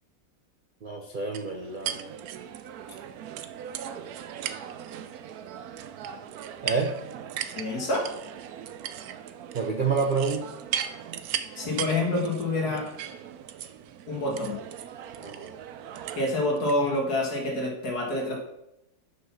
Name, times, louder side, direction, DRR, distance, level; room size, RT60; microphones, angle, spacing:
voice 1, 0.8-2.1 6.6-7.0 9.5-10.5 15.2-15.5, right 4 dB, 50° right, 2 dB, 0.6 m, -28 dB
sound 1, 1.3-16.8, right 9 dB, 70° right, 1.0 m, -38 dB
voice 2, 7.6-8.1 11.6-12.9 14.1-14.6 16.2-18.3, left 2 dB, 60° left, -1 dB, 2.3 m, -27 dB
6.3 x 5.7 x 5.8 m, 0.85 s
omnidirectional pair, 1.9 m